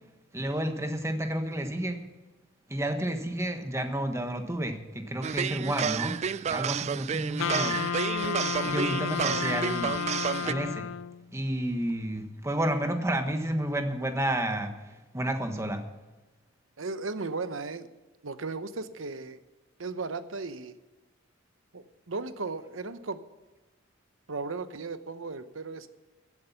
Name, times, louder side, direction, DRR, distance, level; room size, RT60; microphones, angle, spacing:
voice 1, 0.3-2.0 2.7-6.2 6.5-7.8 8.7-10.0 10.4-10.9 11.3-15.8, right 1 dB, 15° right, 6 dB, 1.3 m, -31 dB
sound 1, 5.2-10.5, right 7 dB, 35° right, 0.3 m, -30 dB
Wind instrument woodwind instrument, 7.4-11.3, left 7 dB, 75° left, 0.4 m, -32 dB
voice 2, 8.2-8.8 9.2-9.5 16.8-17.9 18.2-19.4 19.8-20.7 21.7-23.2 24.3-25.9, right 3 dB, 75° right, 12 dB, 0.9 m, -36 dB
15.5 x 8.3 x 5.8 m, 1.1 s
head